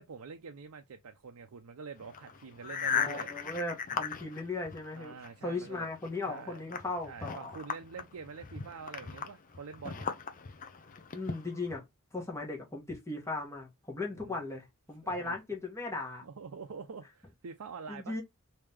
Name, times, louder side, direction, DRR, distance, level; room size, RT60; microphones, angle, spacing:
voice 1, 0.0-3.3 4.9-5.9 6.3-10.1 14.1-14.4 15.0-15.4 16.2-18.2, right 5 dB, 75° right, 0.5 m, -46 dB
sound 1, 2.0-5.3 5.6-11.8, left 6 dB, 40° left, 0.5 m, -38 dB
voice 2, 2.9-5.1 5.4-7.6 11.1-11.8 12.1-16.3 17.9-18.2, left 2 dB, 15° left, 1.3 m, -37 dB
3.3 x 2.8 x 3.4 m
head